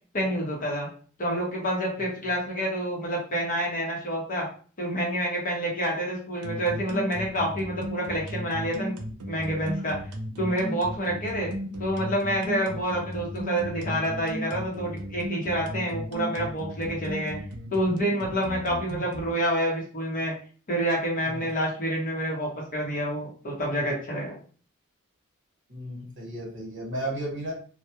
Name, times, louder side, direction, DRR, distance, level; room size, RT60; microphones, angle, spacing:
voice 1, 0.1-0.9 1.2-4.5 4.8-8.9 9.3-10.0 10.4-11.5 11.8-17.4 17.7-20.4 20.7-24.4, equal, 40° left, -2 dB, 0.7 m, -28 dB
sound 1, 6.4-19.3, right 1 dB, 85° right, 0.5 m, -35 dB
voice 2, 25.7-27.5, right 1 dB, 60° right, -2 dB, 1.1 m, -34 dB
2.2 x 2.0 x 2.8 m, 0.42 s
head